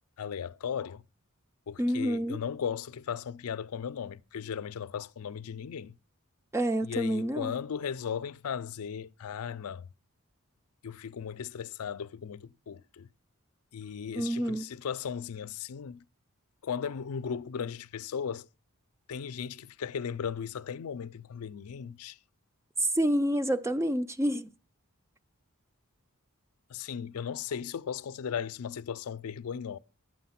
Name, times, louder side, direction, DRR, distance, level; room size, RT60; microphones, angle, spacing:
voice 1, 0.2-1.0 1.7-6.0 6.8-9.9 10.8-13.1 13.7-16.0 16.6-18.5 19.1-22.2 26.7-29.8, left 7 dB, 75° left, 0.4 m, -36 dB
voice 2, 1.8-2.4 6.5-7.5 14.2-14.7 22.8-24.5, right 1 dB, 15° right, 0.5 m, -28 dB
10.0 x 7.6 x 5.7 m
head